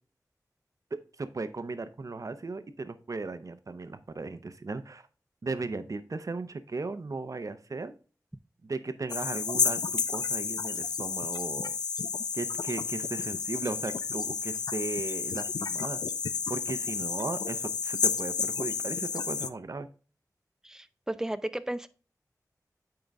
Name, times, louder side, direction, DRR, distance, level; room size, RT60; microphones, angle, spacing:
voice 1, 0.9-5.0 5.4-7.9 8.6-11.7 12.3-16.0 16.5-19.9, right 3 dB, 55° right, 11 dB, 0.7 m, -36 dB
sound 1, 9.1-19.5, left 5 dB, 85° left, 0.3 m, -31 dB
voice 2, 20.6-21.9, right 1 dB, 10° right, 13 dB, 0.5 m, -34 dB
8.8 x 3.9 x 3.4 m, 0.36 s
cardioid pair, 50°, 7 cm